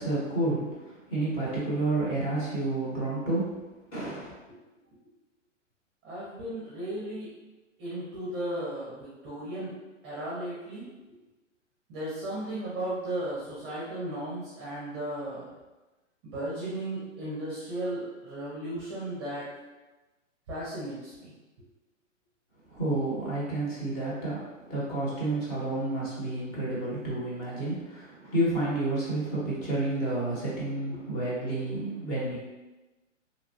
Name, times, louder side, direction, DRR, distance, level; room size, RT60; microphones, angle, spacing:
voice 1, 0.0-3.5 3.9-4.3 22.7-32.4, right 2 dB, 35° left, -7 dB, 1.1 m, -30 dB
voice 2, 6.0-7.3 7.8-9.7 10.0-10.9 11.9-15.5 16.2-19.4 20.5-21.3, right 1 dB, 20° right, -7 dB, 0.5 m, -35 dB
2.8 x 2.1 x 2.7 m, 1.1 s
hypercardioid pair, 145°, 39 cm